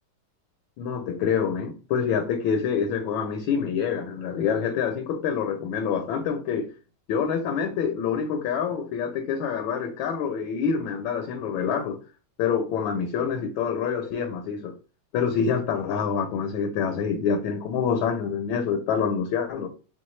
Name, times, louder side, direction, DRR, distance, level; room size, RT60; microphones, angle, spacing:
voice 1, 0.8-6.7 7.1-12.0 12.4-14.7 15.1-19.7, left 6 dB, 75° left, 1.3 m, -26 dB
5.7 x 2.2 x 3.1 m
omnidirectional pair, 2.3 m